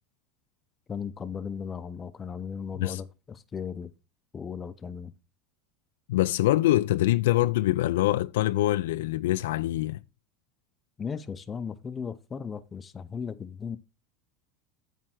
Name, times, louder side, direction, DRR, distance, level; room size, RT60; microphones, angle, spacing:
voice 1, 0.9-3.9 4.3-5.1 11.0-13.8, left 6 dB, 25° left, 0.6 m, -36 dB
voice 2, 6.1-10.0, left 15 dB, 80° left, 0.3 m, -24 dB
8.7 x 3.4 x 6.1 m
supercardioid pair, 100°, 0 cm